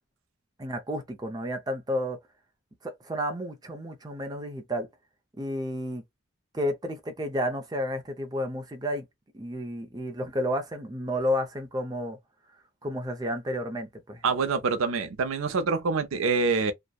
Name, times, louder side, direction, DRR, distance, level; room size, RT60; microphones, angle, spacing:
voice 1, 0.6-2.2 2.8-4.9 5.4-6.0 6.5-9.1 9.3-12.2 12.8-14.2, equal, 20° right, 0.5 m, -31 dB
voice 2, 14.2-16.7, right 4 dB, 80° right, 0.5 m, -26 dB
2.6 x 2.1 x 2.2 m
head